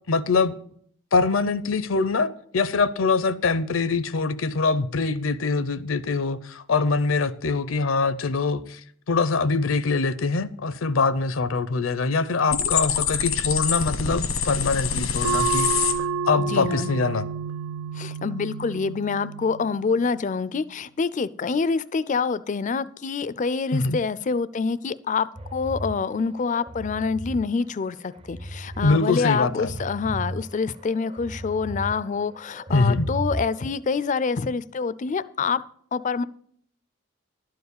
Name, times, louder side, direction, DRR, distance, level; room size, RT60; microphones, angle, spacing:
voice 1, 0.1-0.5 1.1-8.8 9.1-15.9 16.3-17.3 23.7-24.0 28.8-29.7 32.7-33.1, left 4 dB, 75° left, 14 dB, 0.6 m, -23 dB
sound 1, 12.5-15.9, left 7 dB, 90° left, 1.2 m, -25 dB
sound 2, 15.2-20.4, right 6 dB, 85° right, 0.3 m, -30 dB
voice 2, 16.4-16.9 17.9-35.6 35.9-36.2, left 5 dB, 35° left, 17 dB, 0.4 m, -26 dB
sound 3, 25.3-27.4 27.9-29.0 29.3-32.0 32.3-33.8, right 1 dB, 25° right, 0.5 m, -35 dB
12.0 x 4.7 x 8.2 m, 0.62 s
head